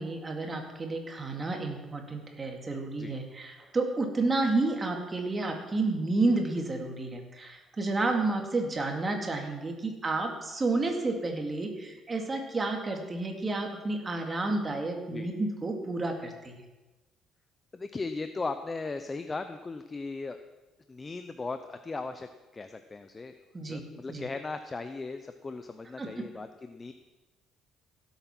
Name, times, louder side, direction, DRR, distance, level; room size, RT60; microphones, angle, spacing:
voice 1, 0.0-16.5 23.5-23.8 24.1-24.2 26.0-26.3, right 2 dB, 20° right, 3 dB, 2.1 m, -31 dB
voice 2, 17.7-20.4 20.9-22.3 22.5-23.3 23.6-26.9, left 3 dB, 20° left, 9 dB, 0.6 m, -37 dB
16.5 x 8.1 x 6.1 m, 1.1 s
cardioid pair, 130°, 0 cm